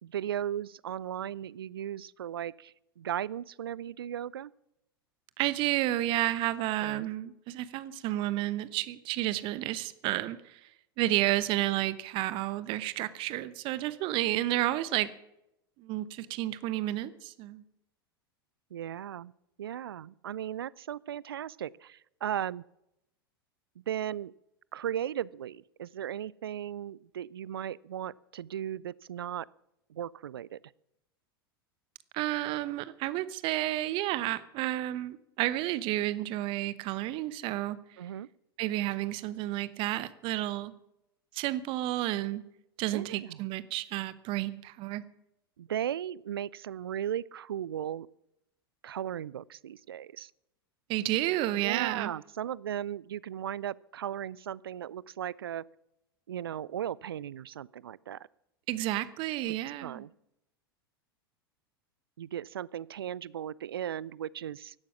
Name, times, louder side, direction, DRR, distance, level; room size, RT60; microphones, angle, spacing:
voice 1, 0.0-4.5 6.8-7.0 18.7-19.3 19.6-22.6 23.8-24.3 24.7-29.5 29.9-30.6 38.0-38.3 42.9-43.4 45.6-48.1 48.8-50.3 51.6-55.6 56.3-58.2 59.8-60.1 62.2-64.7, right 10 dB, 70° right, 24 dB, 0.4 m, -36 dB
voice 2, 5.4-10.7 11.0-15.1 15.8-17.6 32.1-37.8 38.6-40.7 41.3-42.4 42.8-45.0 50.9-52.1 58.7-60.0, right 15 dB, 40° right, 16 dB, 0.9 m, -31 dB
16.0 x 12.0 x 6.1 m, 0.84 s
figure-of-eight pair, 85°, 13 cm